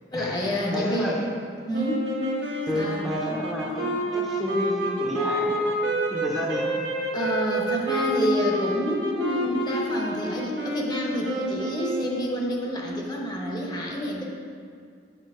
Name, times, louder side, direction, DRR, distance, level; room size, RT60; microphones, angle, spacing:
voice 1, 0.1-1.1 1.6-2.1 2.7-3.0 7.1-14.3, equal, 25° left, -2 dB, 0.9 m, -28 dB
voice 2, 0.7-1.3 2.7-5.7 6.1-6.8, equal, ahead, -5 dB, 0.7 m, -31 dB
sound 1, 1.7-12.5, right 1 dB, 80° right, 1.2 m, -28 dB
7.2 x 4.5 x 4.8 m, 2.2 s
head